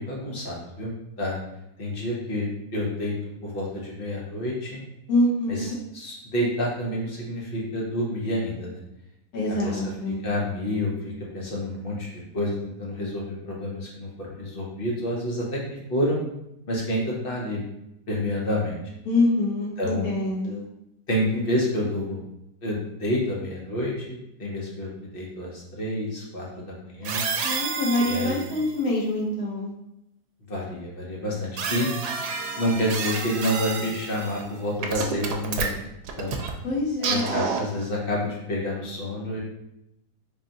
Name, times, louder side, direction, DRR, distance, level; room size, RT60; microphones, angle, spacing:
voice 1, 0.0-1.4 1.8-3.1 3.4-4.8 5.5-8.8 9.5-16.2 16.7-17.6 18.1-18.8 19.8-20.1 21.1-22.2 22.6-27.2 28.0-28.5 30.5-31.9 32.6-35.7 36.2-36.4 37.0-39.4, left 1 dB, 40° left, -3 dB, 0.9 m, -29 dB
voice 2, 5.1-5.8 9.3-10.2 19.0-20.6 27.4-29.7 36.6-37.3, left 1 dB, 70° left, -4 dB, 1.5 m, -25 dB
sound 1, 27.0-28.7 31.6-34.5 34.8-36.5 37.0-37.8, right 5 dB, 75° right, 1.1 m, -30 dB
3.6 x 2.4 x 4.0 m, 0.84 s
omnidirectional pair, 1.7 m